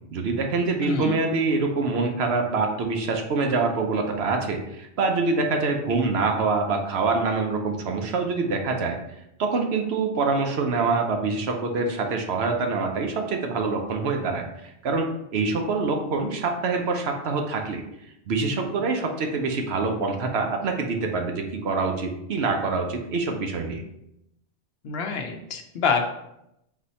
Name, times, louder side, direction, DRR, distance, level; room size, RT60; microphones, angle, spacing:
voice 1, 0.1-9.0 9.4-17.8 18.3-23.8, right 3 dB, 70° right, 3 dB, 0.9 m, -25 dB
voice 2, 0.8-1.2 24.8-26.1, left 5 dB, 65° left, 4 dB, 0.8 m, -26 dB
4.1 x 2.8 x 4.1 m, 0.81 s
omnidirectional pair, 1.2 m